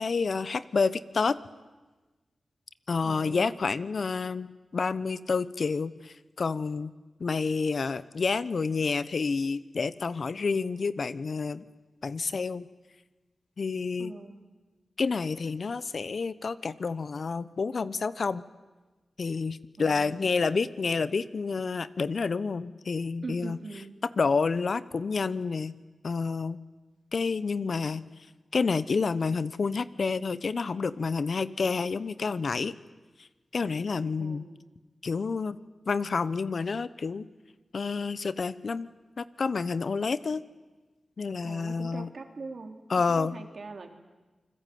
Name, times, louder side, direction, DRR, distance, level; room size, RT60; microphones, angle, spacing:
voice 1, 0.0-1.4 2.9-6.9 7.2-11.6 12.0-12.7 13.6-14.1 15.0-18.4 19.2-23.6 24.2-25.8 26.0-26.6 27.1-28.1 28.5-32.7 33.2-33.3 33.5-34.5 35.0-35.6 35.9-37.3 37.7-38.9 39.2-40.4 41.2-42.1 42.9-43.4, left 4 dB, 65° left, 16 dB, 1.0 m, -29 dB
voice 2, 3.0-3.6 14.0-14.4 19.8-20.3 23.2-23.9 34.2-34.6 41.4-43.9, right 3 dB, 65° right, 5 dB, 3.4 m, -42 dB
28.0 x 21.0 x 9.4 m, 1.2 s
cardioid pair, 60°, 0 cm